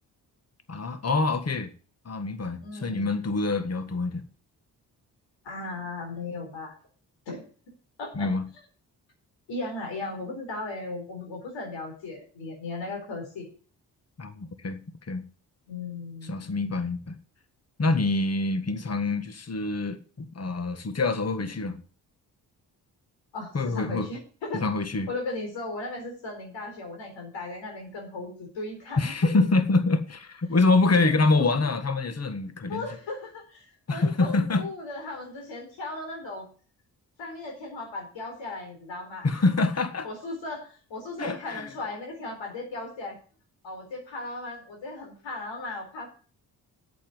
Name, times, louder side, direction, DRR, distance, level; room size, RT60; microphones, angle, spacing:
voice 1, 0.7-1.7 2.1-4.2 8.2-8.4 14.2-15.2 16.3-17.2 17.8-21.8 23.5-24.1 24.5-25.1 29.0-32.9 33.9-34.6 39.2-40.1 41.2-41.7, left 3 dB, 35° left, 10 dB, 1.7 m, -26 dB
voice 2, 2.6-3.1 5.4-6.8 7.3-7.5 8.0-8.3 9.5-13.5 15.7-16.5 23.3-24.6 25.1-29.1 30.9-31.1 31.4-31.7 32.7-36.5 37.2-39.4 40.0-43.2 43.6-46.1, left 2 dB, 75° left, 2 dB, 4.3 m, -37 dB
8.4 x 7.7 x 8.0 m, 0.40 s
hypercardioid pair, 40°, 45 cm